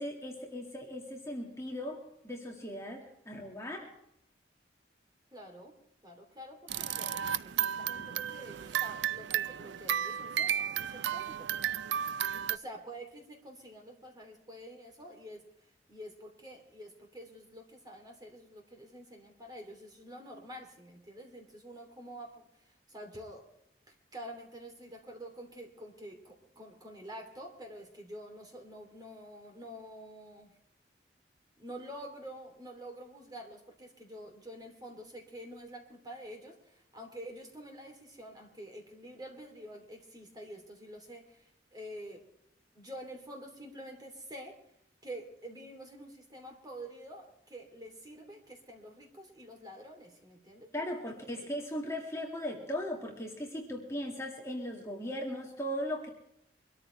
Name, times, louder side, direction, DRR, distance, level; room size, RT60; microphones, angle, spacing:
voice 1, 0.0-3.9 50.7-56.1, equal, 15° left, 0 dB, 2.1 m, -38 dB
voice 2, 5.3-5.7 6.0-11.5 12.5-15.4 15.9-22.5 22.9-23.4 24.1-30.5 31.6-42.2 42.7-44.5 45.0-50.7 51.0-51.5, equal, 20° right, 2 dB, 3.1 m, -48 dB
sound 1, 6.7-12.6, right 9 dB, 80° right, 0.5 m, -33 dB
24.0 x 13.5 x 3.3 m, 0.76 s
head